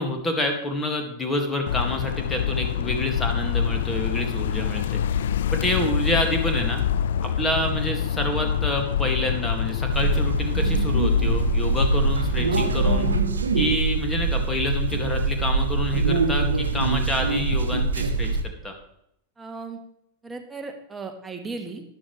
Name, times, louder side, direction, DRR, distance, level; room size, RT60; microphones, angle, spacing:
voice 1, 0.0-5.0 5.5-6.8 7.2-13.1 13.5-18.7, left 1 dB, 10° left, 3 dB, 2.2 m, -28 dB
sound 1, 1.7-13.2, left 8 dB, 60° left, 0.4 m, -26 dB
sound 2, 9.9-18.4, right 3 dB, 70° right, 0.9 m, -24 dB
voice 2, 19.4-19.8 20.2-21.8, right 4 dB, 10° right, 4 dB, 1.6 m, -36 dB
12.5 x 11.0 x 3.3 m, 0.75 s
figure-of-eight pair, 90°, 0 cm